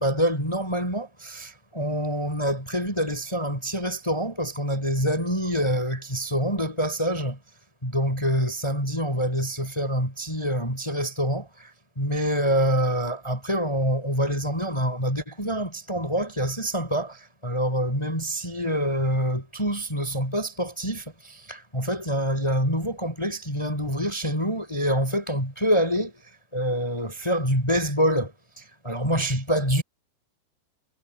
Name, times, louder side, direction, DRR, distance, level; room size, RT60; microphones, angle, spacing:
voice 1, 0.0-7.4 7.8-11.7 12.0-26.1 26.5-29.8, equal, 5° left, 5.1 m, -26 dB
omnidirectional pair, 5.3 m